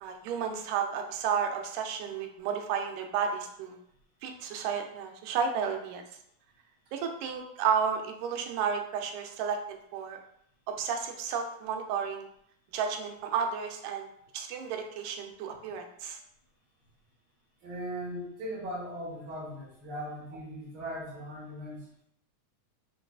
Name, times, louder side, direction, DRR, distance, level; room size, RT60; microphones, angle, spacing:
voice 1, 0.0-3.8 4.2-6.0 6.9-9.6 9.9-10.2 10.7-12.3 12.7-14.1 14.3-16.2, right 7 dB, 90° right, 4 dB, 2.1 m, -32 dB
voice 2, 17.6-22.0, equal, 55° right, -10 dB, 1.3 m, -39 dB
5.7 x 2.3 x 2.3 m, 0.71 s
omnidirectional pair, 3.6 m